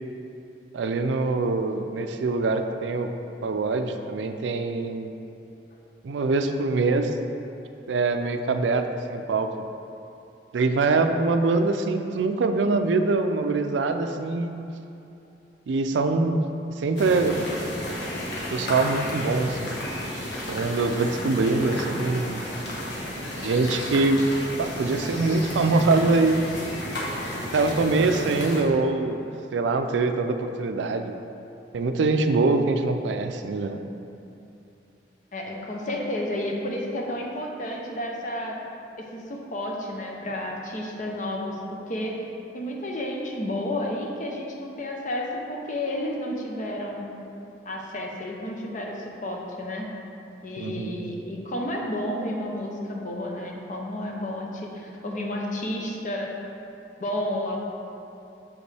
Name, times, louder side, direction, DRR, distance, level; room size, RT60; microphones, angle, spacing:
voice 1, 0.7-3.1 3.4-5.1 6.0-7.1 7.9-9.5 10.5-14.6 15.7-16.4 16.8-17.4 18.5-19.8 20.5-22.4 23.4-24.3 24.6-26.4 27.5-31.3 31.7-33.8 50.6-51.0, right 3 dB, 85° right, 7 dB, 0.4 m, -24 dB
sound 1, 17.0-28.6, left 1 dB, 75° left, 1.3 m, -33 dB
voice 2, 35.3-38.6 39.0-42.2 42.5-47.1 47.6-49.8 50.4-56.3 57.0-57.6, left 1 dB, 45° left, 0 dB, 0.8 m, -31 dB
7.0 x 5.2 x 3.3 m, 2.7 s
head